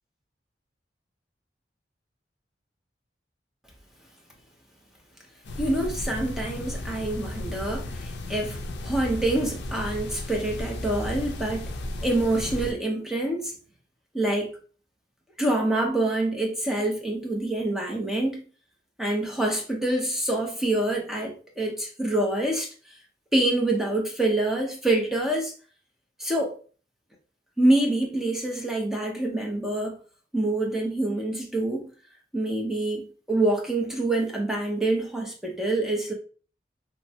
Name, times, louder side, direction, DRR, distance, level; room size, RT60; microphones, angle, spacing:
sound 1, 5.4-12.7, left 1 dB, 65° left, 0.4 m, -34 dB
voice 1, 5.6-11.7 12.0-13.5 14.1-14.5 15.4-18.4 19.0-22.7 23.3-25.5 26.2-26.6 27.6-30.0 30.3-31.9 32.3-36.1, right 2 dB, ahead, 0.6 m, -26 dB
3.2 x 2.1 x 2.8 m
head